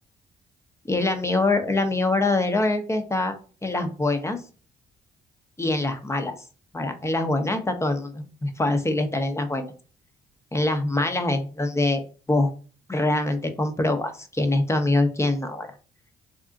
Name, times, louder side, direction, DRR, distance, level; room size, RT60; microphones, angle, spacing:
voice 1, 0.9-3.3 3.6-4.4 5.6-6.3 6.7-9.7 10.5-12.0 12.3-12.5 12.9-15.7, left 2 dB, 15° left, 6 dB, 0.9 m, -24 dB
3.6 x 2.4 x 3.7 m, 0.38 s
hypercardioid pair, 45°, 19 cm